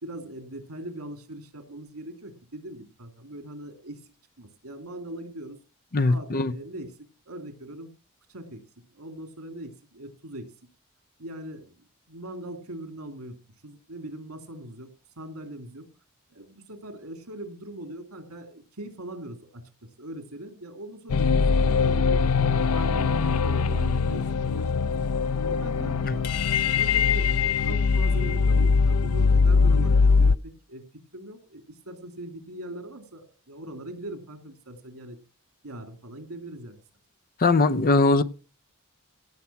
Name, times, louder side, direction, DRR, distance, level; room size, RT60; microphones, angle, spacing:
voice 1, 0.0-5.6 6.0-6.9 7.2-7.9 8.3-8.6 8.9-10.5 11.2-13.4 13.6-14.9 15.2-15.8 16.3-19.6 20.0-24.9 25.5-26.3 26.7-30.8 31.1-35.2 35.6-36.8, right 1 dB, 90° right, 2.9 m, -41 dB
voice 2, 5.9-6.5 26.0-26.2 37.4-38.2, left 3 dB, 40° left, 0.7 m, -20 dB
sound 1, 21.1-30.4, left 5 dB, 85° left, 0.5 m, -22 dB
17.0 x 6.9 x 5.8 m
head